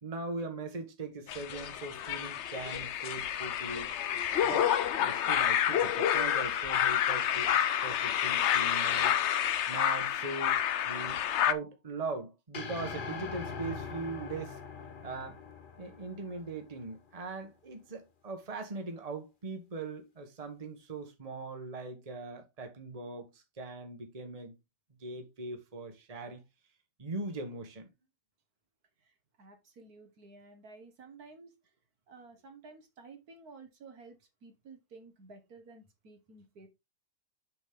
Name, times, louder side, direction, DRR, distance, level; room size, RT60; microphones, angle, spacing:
voice 1, 0.0-3.9 4.4-4.7 5.0-9.2 9.7-10.6 10.8-14.6 15.0-15.4 15.8-24.6 25.0-26.4 27.0-27.9, right 3 dB, 25° right, 1.4 m, -40 dB
sound 1, 1.3-11.5, left 10 dB, 65° left, 0.7 m, -29 dB
sound 2, 12.5-16.9, left 5 dB, 40° left, 0.9 m, -42 dB
voice 2, 29.4-31.5 32.1-36.7, right 3 dB, 65° right, 1.9 m, -53 dB
7.1 x 5.2 x 3.7 m
omnidirectional pair, 1.7 m